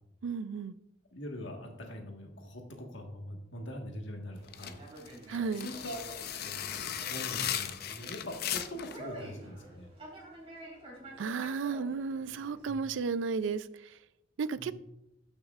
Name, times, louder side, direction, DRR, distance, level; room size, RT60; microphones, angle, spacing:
voice 1, 0.2-0.8 5.3-5.7 11.2-14.0 14.4-14.7, right 5 dB, 85° right, 16 dB, 0.4 m, -33 dB
voice 2, 1.1-4.8 5.6-9.9 12.6-12.8 14.6-14.7, equal, 80° left, 2 dB, 1.5 m, -43 dB
Conversation, 4.3-12.7, right 1 dB, 35° right, 2.6 m, -49 dB
sound 1, 4.5-9.0, left 10 dB, 55° left, 0.5 m, -37 dB
12.5 x 6.3 x 2.4 m, 0.85 s
head